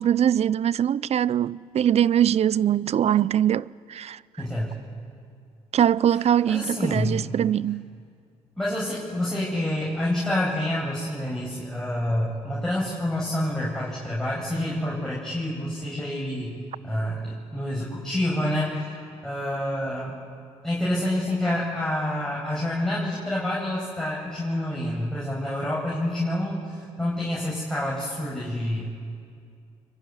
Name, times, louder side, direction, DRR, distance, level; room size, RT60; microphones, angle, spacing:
voice 1, 0.0-4.2 5.7-7.9, right 10 dB, 55° right, 0.6 m, -22 dB
voice 2, 4.4-4.7 6.5-7.1 8.6-16.6 16.8-20.2 20.6-28.9, left 1 dB, 5° left, 7.7 m, -28 dB
24.0 x 23.5 x 9.8 m
supercardioid pair, 60°, 13 cm